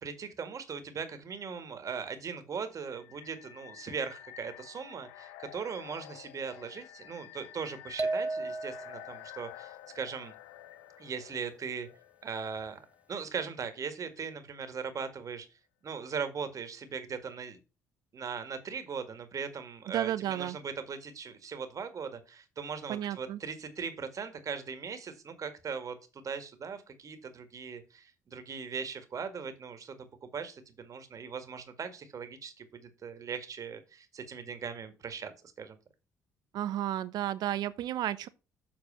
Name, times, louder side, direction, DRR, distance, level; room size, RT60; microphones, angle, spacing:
voice 1, 0.0-10.3 11.0-11.9 12.2-12.8 13.1-15.5 15.8-17.6 18.1-35.3 35.6-35.8, right 6 dB, 50° right, 1.8 m, -39 dB
sound 1, 2.8-13.6, left 14 dB, 85° left, 0.5 m, -51 dB
sound 2, 8.0-9.2, right 3 dB, 20° right, 0.3 m, -33 dB
voice 2, 19.9-20.6 22.9-23.4 36.5-38.3, right 12 dB, 65° right, 0.7 m, -32 dB
7.6 x 4.3 x 6.8 m
hypercardioid pair, 55°, 7 cm